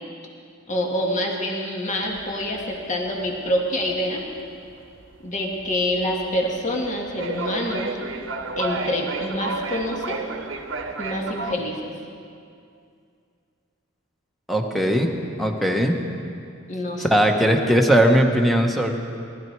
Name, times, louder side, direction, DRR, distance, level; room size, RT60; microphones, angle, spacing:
voice 1, 0.7-4.3 5.2-8.0 8.6-10.2 11.0-11.9 16.7-17.1, left 1 dB, 40° left, 0 dB, 1.8 m, -26 dB
sound 1, 2.0-11.6, right 3 dB, 70° right, 1.0 m, -32 dB
voice 2, 14.5-15.1 15.4-16.0 17.0-18.9, equal, ahead, 2 dB, 1.1 m, -19 dB
19.0 x 12.5 x 4.6 m, 2.4 s
head